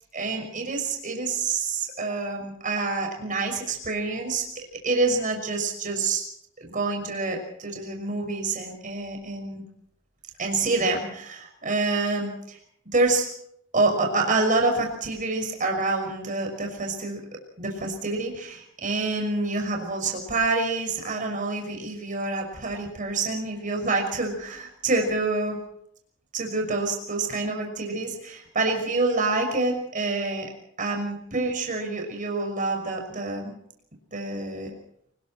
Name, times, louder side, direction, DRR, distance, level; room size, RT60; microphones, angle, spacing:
voice 1, 0.1-4.4 4.8-6.3 6.6-9.6 10.4-12.6 12.9-13.3 13.7-17.2 17.6-25.6 26.3-30.5 30.8-33.5 34.1-34.7, right 3 dB, 40° right, 2 dB, 5.9 m, -27 dB
29.5 x 20.5 x 4.5 m, 0.70 s
head